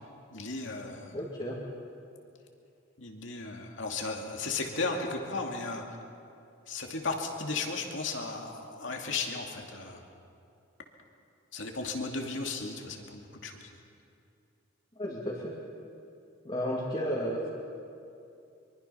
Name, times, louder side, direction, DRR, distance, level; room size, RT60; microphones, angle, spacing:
voice 1, 0.3-1.2 3.0-6.0 6.7-10.0 11.5-13.7, left 3 dB, 70° left, 2 dB, 2.6 m, -35 dB
voice 2, 1.1-1.6 15.0-15.6 16.4-17.5, equal, 25° left, -5 dB, 2.5 m, -33 dB
24.5 x 23.5 x 5.8 m, 2.6 s
head